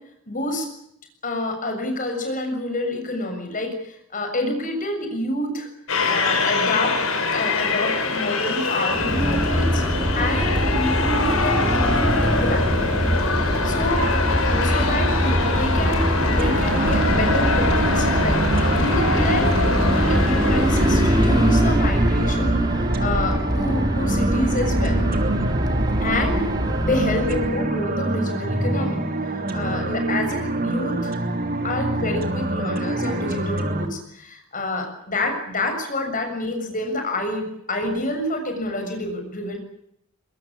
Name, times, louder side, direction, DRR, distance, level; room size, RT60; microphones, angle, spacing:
voice 1, 0.3-0.7 1.2-5.7 6.0-9.8 10.2-13.1 13.5-14.1 14.4-18.4 18.8-22.6 23.0-25.0 26.0-26.4 26.8-29.0 29.5-31.1 31.6-39.6, left 1 dB, 40° left, 5 dB, 7.1 m, -28 dB
sound 1, 5.9-22.1, left 3 dB, 70° left, 5.2 m, -24 dB
sound 2, 8.9-27.6, equal, 20° right, 2.8 m, -22 dB
sound 3, 16.4-33.9, right 2 dB, 40° right, 3.0 m, -26 dB
23.5 x 21.0 x 8.7 m, 0.75 s
head